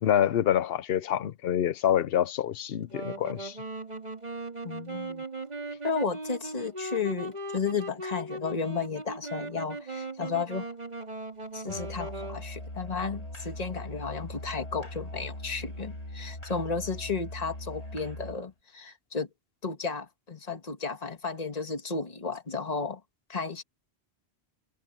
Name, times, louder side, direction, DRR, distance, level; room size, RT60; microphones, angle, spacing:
voice 1, 0.0-3.6, left 10 dB, 65° left, 0.8 m, -26 dB
Wind instrument woodwind instrument, 2.9-12.4, right 2 dB, 40° right, 2.7 m, -38 dB
voice 2, 4.6-5.2 5.8-10.7 11.5-19.3 19.6-23.0 23.3-23.6, left 5 dB, 35° left, 1.8 m, -33 dB
Musical instrument, 11.7-18.4, left 1 dB, 85° left, 7.4 m, -40 dB
omnidirectional pair, 1.1 m